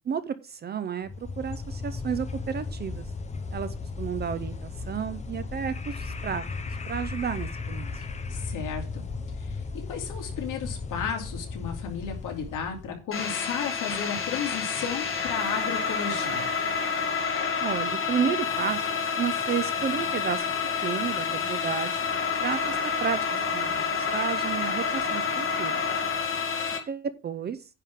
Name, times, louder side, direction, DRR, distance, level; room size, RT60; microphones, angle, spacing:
voice 1, 0.1-3.1 3.5-6.4 6.9-7.9 17.6-18.9 19.2-20.5 20.8-21.9 22.4-23.3 23.5-25.8 26.9-27.6, right 7 dB, 30° right, 13 dB, 0.5 m, -32 dB
sound 1, 1.0-13.0, left 4 dB, 20° left, 0.9 m, -36 dB
voice 2, 8.3-9.0 9.4-9.6 9.9-16.5, left 6 dB, 65° left, 2 dB, 2.7 m, -34 dB
sound 2, 13.1-26.8, left 5 dB, 40° left, 2.1 m, -28 dB
10.0 x 3.7 x 7.3 m, 0.32 s
cardioid pair, 165°, 34 cm